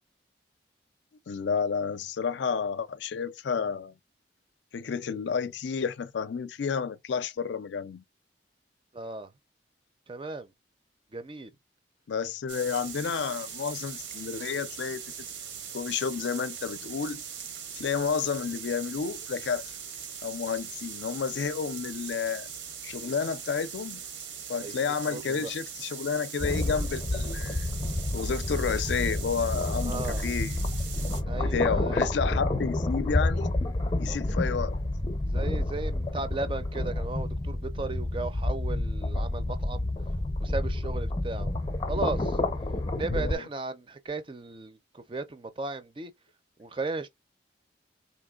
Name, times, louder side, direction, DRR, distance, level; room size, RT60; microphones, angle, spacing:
voice 1, 1.3-3.9 4.7-8.0 12.1-15.0 15.7-17.2 17.7-19.6 20.2-22.5 22.8-24.0 24.5-27.7 28.1-30.6 31.3-33.6 34.0-34.8 43.1-43.5, left 6 dB, 75° left, 0.4 m, -31 dB
voice 2, 8.9-9.3 10.1-10.5 11.1-11.5 24.6-24.8 25.1-25.5 29.8-30.2 31.3-32.1 35.2-39.9 40.4-41.5 41.9-42.4 43.0-46.1 46.6-47.1, right 3 dB, 25° right, 0.5 m, -35 dB
sound 1, 12.5-31.2, right 7 dB, 80° right, 1.1 m, -41 dB
sound 2, 26.4-43.4, left 1 dB, 25° left, 0.5 m, -29 dB
3.7 x 2.8 x 2.3 m
head